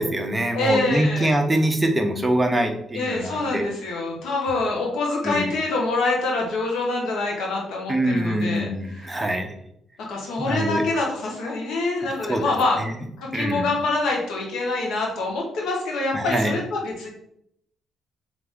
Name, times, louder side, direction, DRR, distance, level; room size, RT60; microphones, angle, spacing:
voice 1, 0.0-3.6 5.2-5.5 7.9-9.5 10.4-10.8 12.0-12.5 12.8-12.9 13.3-13.7 16.1-16.5, right 1 dB, 15° right, 4 dB, 0.7 m, -24 dB
voice 2, 0.5-1.3 2.9-8.7 9.0-9.2 10.1-12.8 13.2-17.1, left 2 dB, 80° left, -1 dB, 1.1 m, -25 dB
3.6 x 3.4 x 3.6 m, 0.72 s
cardioid pair, 90°, 0 cm